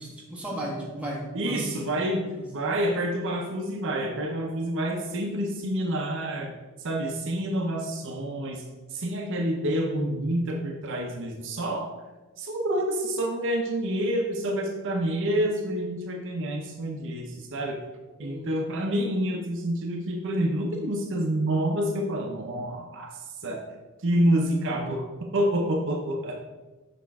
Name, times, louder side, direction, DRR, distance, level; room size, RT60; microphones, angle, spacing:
voice 1, 0.0-1.7 2.4-2.5 18.2-18.5, right 1 dB, 5° right, -4 dB, 1.5 m, -35 dB
voice 2, 1.3-2.2 2.5-6.5 6.8-8.6 8.9-11.9 12.4-17.8 18.2-23.6 24.0-26.4, right 1 dB, 60° right, 2 dB, 0.7 m, -28 dB
6.7 x 5.1 x 3.5 m, 1.2 s
head